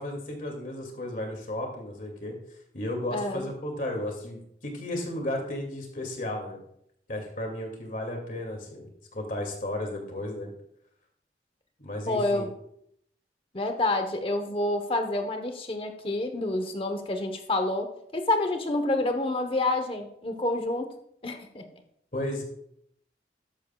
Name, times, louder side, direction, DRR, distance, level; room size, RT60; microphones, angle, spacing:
voice 1, 0.0-2.4 2.7-6.6 7.1-10.5 11.8-12.5 22.1-22.4, left 1 dB, 50° left, 2 dB, 2.4 m, -34 dB
voice 2, 3.1-3.5 12.1-12.5 13.5-20.9 21.2-21.6, left 2 dB, 30° left, 6 dB, 1.0 m, -28 dB
13.5 x 10.0 x 2.4 m, 0.72 s
head